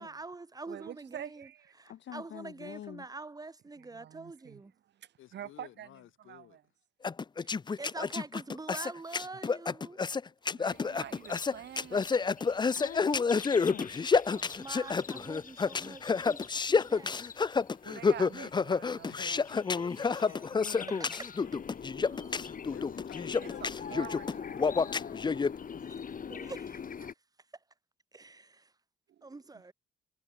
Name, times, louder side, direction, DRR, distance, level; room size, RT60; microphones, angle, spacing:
voice 1, 0.0-1.5 1.8-4.7 7.4-10.0 14.6-17.1 20.3-20.4 21.0-21.5 25.8-27.1 28.1-28.7 29.2-29.7, right 3 dB, 20° right, 1.5 m, -45 dB
voice 2, 0.7-1.7 3.8-4.6 4.9-6.6 10.5-12.5 14.3-14.6 14.8-14.9 17.8-19.4 22.1-22.7 23.4-25.0 29.1-29.3, right 11 dB, 60° right, 0.9 m, -47 dB
voice 3, 1.9-3.1 12.7-13.9 20.5-21.0, left 11 dB, 65° left, 2.3 m, -45 dB
voice 4, 5.2-6.6 19.1-21.0 22.7-25.8, left 14 dB, 85° left, 4.8 m, -52 dB
sound 1, 7.0-25.5, left 5 dB, 20° left, 0.5 m, -29 dB
sound 2, 10.7-27.1, left 7 dB, 45° left, 2.6 m, -45 dB
cardioid pair, 90°, 20 cm